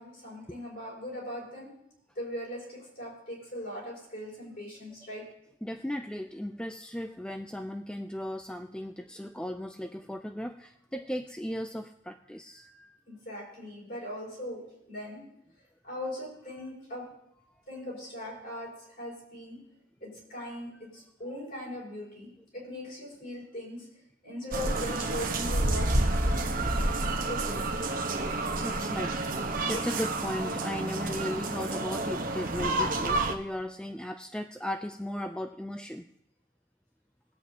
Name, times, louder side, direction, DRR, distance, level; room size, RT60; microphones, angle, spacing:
voice 1, 0.0-1.7 2.2-5.3 13.1-15.3 15.8-17.1 17.7-19.6 20.0-23.9 24.2-26.5 27.3-27.6 29.7-29.8, left 1 dB, 50° left, -4 dB, 5.7 m, -40 dB
voice 2, 5.6-13.0 28.6-29.3 29.7-36.1, left 1 dB, 5° left, 6 dB, 0.3 m, -36 dB
sound 1, 24.5-33.3, right 2 dB, 45° right, 1.0 m, -29 dB
21.5 x 8.5 x 2.8 m, 0.77 s
head